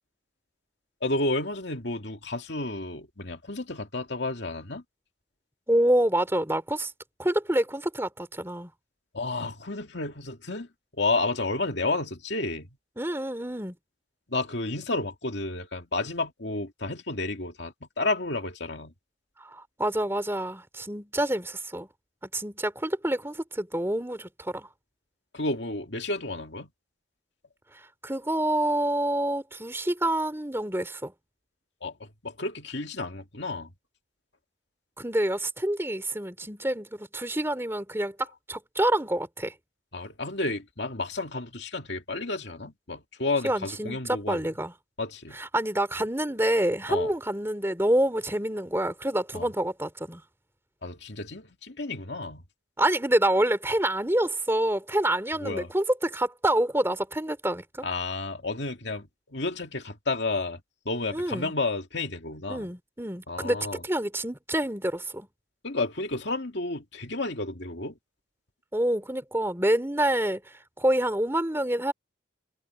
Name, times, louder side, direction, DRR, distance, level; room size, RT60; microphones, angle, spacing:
voice 1, 1.0-4.8 9.1-10.7 10.9-12.7 14.3-18.9 25.3-26.7 31.8-33.7 39.9-44.5 45.0-45.4 46.9-47.1 49.3-49.5 50.8-52.4 55.4-55.7 57.8-62.7 63.3-63.8 65.6-68.0, left 2 dB, 65° left, 2.5 m, -31 dB
voice 2, 5.7-6.9 7.2-8.7 13.0-13.7 19.4-21.9 22.3-24.7 28.0-31.1 35.0-38.1 38.5-39.5 43.4-44.7 45.4-50.2 52.8-57.6 61.1-61.5 62.5-65.3 68.7-70.4 70.8-71.9, right 1 dB, 15° right, 2.9 m, -27 dB
head